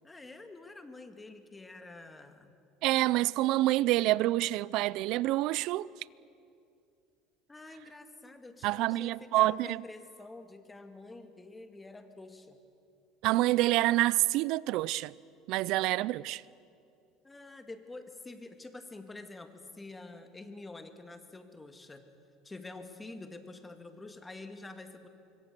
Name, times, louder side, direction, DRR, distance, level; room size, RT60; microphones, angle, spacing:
voice 1, 0.0-2.5 7.5-12.6 17.2-22.0 22.4-25.1, left 2 dB, 15° left, 1.9 m, -47 dB
voice 2, 2.8-5.9 8.6-9.8 13.2-15.1 15.5-16.4, right 17 dB, 65° right, 0.5 m, -27 dB
25.5 x 23.0 x 6.8 m
supercardioid pair, 120°, 0 cm